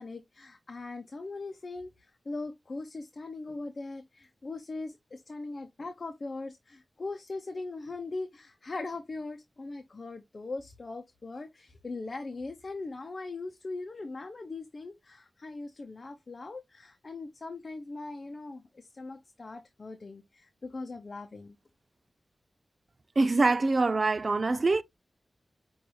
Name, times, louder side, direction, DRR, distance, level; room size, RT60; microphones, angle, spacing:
voice 1, 0.0-21.6, left 3 dB, 55° left, 0.8 m, -40 dB
voice 2, 23.2-24.8, right 3 dB, 55° right, 0.5 m, -24 dB
6.0 x 2.6 x 3.2 m
cardioid pair, 45°, 0 cm